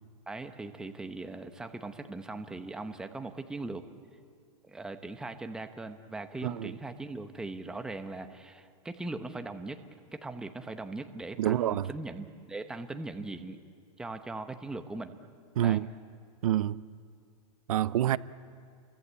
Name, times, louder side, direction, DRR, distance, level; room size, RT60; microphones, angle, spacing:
voice 1, 0.3-3.8 4.7-9.8 10.1-13.6 14.0-15.2 15.6-15.8, right 2 dB, 5° right, 0.9 m, -40 dB
voice 2, 6.4-6.7 11.4-11.9 15.6-15.9 16.4-16.8 17.7-18.2, right 12 dB, 75° right, 0.7 m, -27 dB
30.0 x 23.5 x 8.2 m
supercardioid pair, 165°, 18 cm